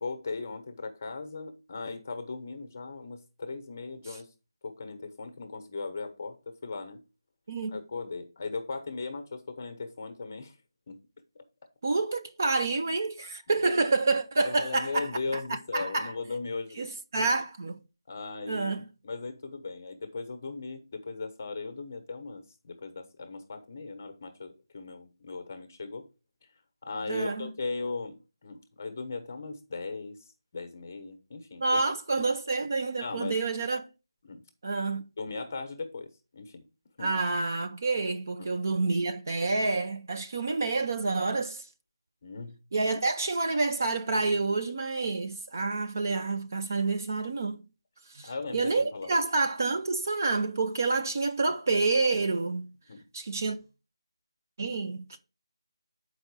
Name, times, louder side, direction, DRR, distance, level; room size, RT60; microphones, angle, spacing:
voice 1, 0.0-4.3 4.6-7.0 7.7-10.5 10.9-11.0 14.4-16.9 17.2-17.3 18.1-18.7 19.0-26.1 26.8-30.2 30.5-31.8 32.1-32.2 33.0-33.4 34.2-34.4 35.2-36.6 37.0-37.2 38.4-38.5 42.2-42.6 48.2-49.2 52.9-53.1, left 3 dB, 30° left, 1.0 m, -38 dB
voice 2, 7.5-7.8 11.8-16.1 16.8-17.8 18.5-18.8 27.1-27.5 31.6-33.9 34.6-35.1 37.0-41.6 42.7-47.6 48.1-52.7 53.1-53.6 54.6-55.2, right 3 dB, 40° right, 0.7 m, -28 dB
7.8 x 4.9 x 4.6 m
figure-of-eight pair, 175°, 2 cm